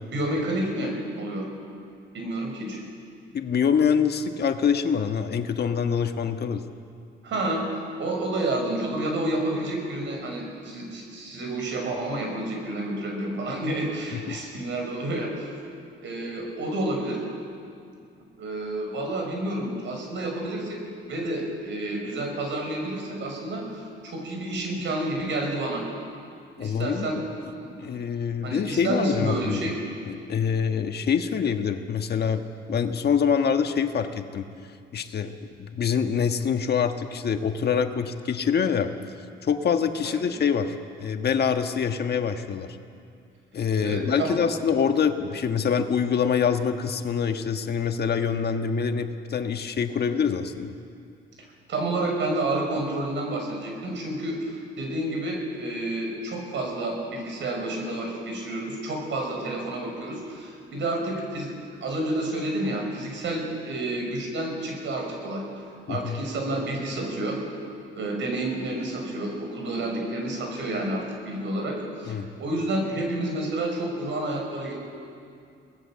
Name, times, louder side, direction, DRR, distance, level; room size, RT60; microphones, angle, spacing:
voice 1, 0.1-1.5 2.1-2.8 7.2-7.6 8.0-15.5 16.0-17.2 18.4-25.9 26.6-27.2 27.6-27.9 28.4-29.8 40.0-40.2 43.8-44.4 51.7-61.5 61.8-65.4 65.9-67.4 67.9-74.7, right 1 dB, 70° right, 1 dB, 5.9 m, -30 dB
voice 2, 3.3-6.6 14.3-14.4 26.6-27.2 27.8-29.6 30.0-34.4 34.9-35.3 35.6-38.9 39.4-42.7 43.5-50.7 65.9-66.2 72.0-72.3, left 7 dB, 55° left, 6 dB, 1.4 m, -25 dB
24.0 x 18.5 x 7.5 m, 2.4 s
cardioid pair, 90°, 20 cm